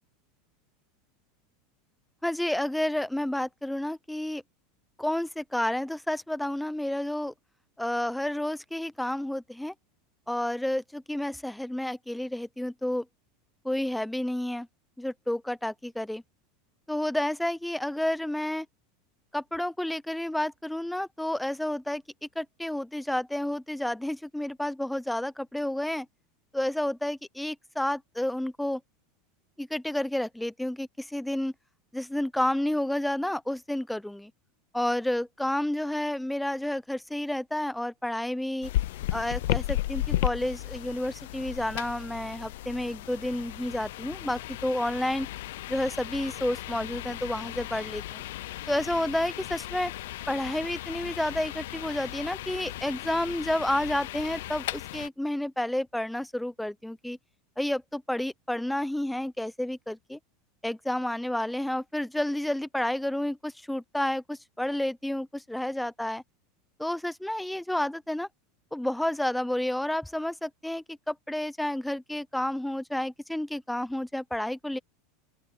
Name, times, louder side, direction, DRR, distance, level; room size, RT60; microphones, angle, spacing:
voice 1, 2.2-4.4 5.0-7.3 7.8-9.7 10.3-13.0 13.6-14.7 15.0-16.2 16.9-18.7 19.3-22.0 22.4-26.1 26.5-28.8 29.6-31.5 31.9-34.3 34.7-38.7 39.1-45.3 45.7-48.2 48.7-49.9 50.3-57.2 57.6-60.2 60.6-66.2 66.8-68.3 68.7-74.8, left 1 dB, 5° left, 0.8 m, -30 dB
sound 1, 38.6-55.1, left 15 dB, 75° left, 0.6 m, -35 dB
open air
supercardioid pair, 140°, 0 cm